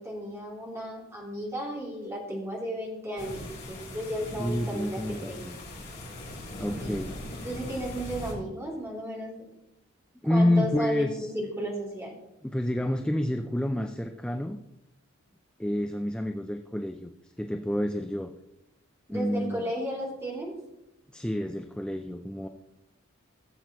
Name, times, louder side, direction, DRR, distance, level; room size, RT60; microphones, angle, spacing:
voice 1, 0.0-5.4 6.8-7.1 7.4-9.4 10.3-12.2 19.1-20.6, equal, 15° right, -4 dB, 3.0 m, -34 dB
sound 1, 3.2-8.3, left 1 dB, 50° left, 3.6 m, -40 dB
voice 2, 4.4-5.5 6.6-7.1 10.2-11.3 11.6-11.7 12.4-14.6 15.6-18.3 19.1-19.7 21.1-22.5, left 1 dB, 5° left, 5 dB, 0.4 m, -29 dB
16.0 x 7.6 x 3.1 m, 0.87 s
head